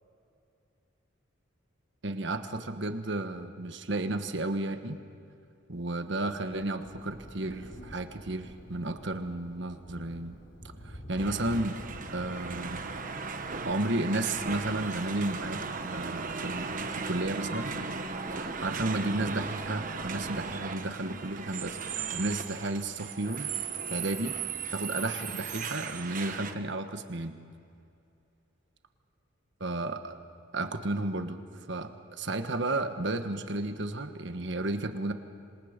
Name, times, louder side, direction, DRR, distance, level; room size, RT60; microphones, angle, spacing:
voice 1, 2.0-5.0 5.7-10.4 10.8-11.8 12.1-12.8 13.6-17.7 18.3-23.5 23.9-24.4 24.7-27.4 29.6-30.2 30.5-35.1, right 2 dB, 60° right, 8 dB, 1.4 m, -33 dB
Thunder, 5.7-18.6 19.5-19.6, equal, 65° left, 4.9 m, -50 dB
sound 1, 11.2-26.5, right 5 dB, 40° right, 1.2 m, -37 dB
26.5 x 26.5 x 5.2 m, 2.5 s
head